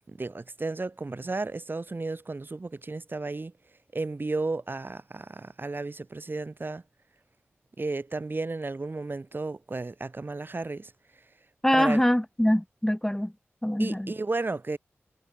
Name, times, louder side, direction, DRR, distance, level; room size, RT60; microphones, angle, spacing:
voice 1, 0.1-3.5 3.9-6.8 7.8-10.9 11.7-12.0 13.8-14.8, right 3 dB, 45° right, 4.8 m, -33 dB
voice 2, 11.6-13.3 13.6-14.1, equal, 10° left, 1.7 m, -24 dB
cardioid pair, 45°, 5 cm